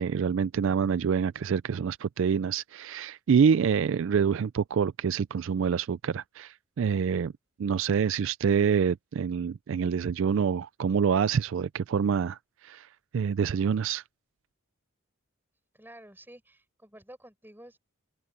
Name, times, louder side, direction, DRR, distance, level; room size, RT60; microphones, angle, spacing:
voice 1, 0.0-7.3 7.6-12.9 13.1-14.0, right 6 dB, 60° right, 0.3 m, -26 dB
voice 2, 15.7-17.8, right 1 dB, 10° right, 7.7 m, -50 dB
head